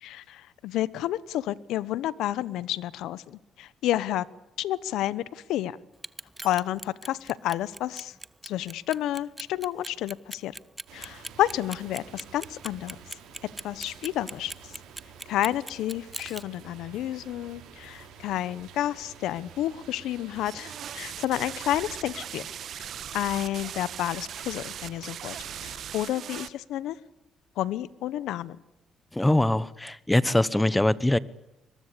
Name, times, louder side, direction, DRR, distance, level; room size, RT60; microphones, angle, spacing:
voice 1, 0.0-4.2 4.6-5.8 6.4-8.1 8.4-10.5 10.9-13.0 13.6-14.5 15.3-22.5 22.8-27.0 27.6-28.6, left 13 dB, 85° left, 20 dB, 1.0 m, -30 dB
Clock, 5.9-16.4, right 2 dB, 15° right, 0.8 m, -40 dB
sound 1, 10.9-25.8, right 7 dB, 90° right, 5.7 m, -49 dB
sound 2, 20.5-26.5, right 9 dB, 65° right, 1.3 m, -39 dB
voice 2, 29.1-31.2, left 1 dB, 10° left, 19 dB, 1.1 m, -23 dB
23.5 x 22.0 x 8.5 m, 0.93 s
cardioid pair, 90°, 0 cm